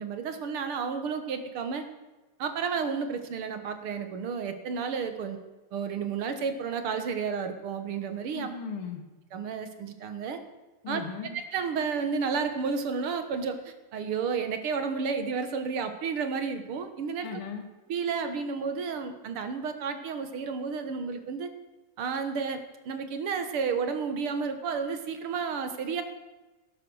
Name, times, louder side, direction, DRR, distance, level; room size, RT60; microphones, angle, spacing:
voice 1, 0.0-1.8 2.4-5.4 5.7-8.5 9.3-10.4 10.9-11.0 11.3-17.4 17.9-21.5 22.0-26.0, right 5 dB, 80° right, 8 dB, 2.2 m, -31 dB
voice 2, 8.3-9.0 10.8-11.3 17.2-17.7, left 6 dB, 75° left, 5 dB, 2.7 m, -37 dB
18.0 x 10.5 x 6.4 m, 1.1 s
omnidirectional pair, 2.4 m